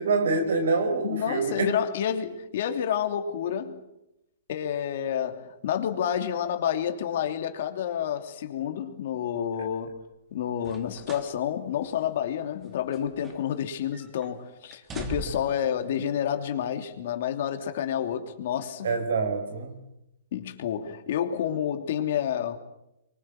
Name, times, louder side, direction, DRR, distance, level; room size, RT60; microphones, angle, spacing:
voice 1, 0.0-1.7 18.8-19.8, right 3 dB, 75° right, 5.5 m, -26 dB
voice 2, 1.0-3.8 4.5-10.0 10.3-19.0 20.3-22.6, left 9 dB, 60° left, 3.1 m, -29 dB
sound 1, 10.6-11.4 11.7-11.9 12.6-13.7 13.9-14.3 14.7-15.6 16.5-16.6, right 3 dB, 20° right, 3.1 m, -40 dB
25.0 x 24.0 x 7.8 m
hypercardioid pair, 135°, 0 cm